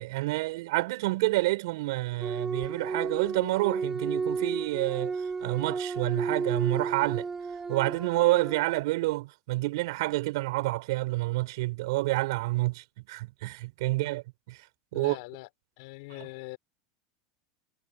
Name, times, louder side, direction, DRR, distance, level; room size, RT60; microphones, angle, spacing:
voice 1, 0.0-7.3 7.7-14.6 14.9-15.2 16.1-16.3, right 21 dB, 75° right, 7.5 m, -28 dB
sound 1, 2.2-8.8, right 4 dB, 20° right, 6.7 m, -33 dB
voice 2, 14.9-15.5 15.8-16.6, left 26 dB, 70° left, 5.1 m, -42 dB
supercardioid pair, 115°, 2 cm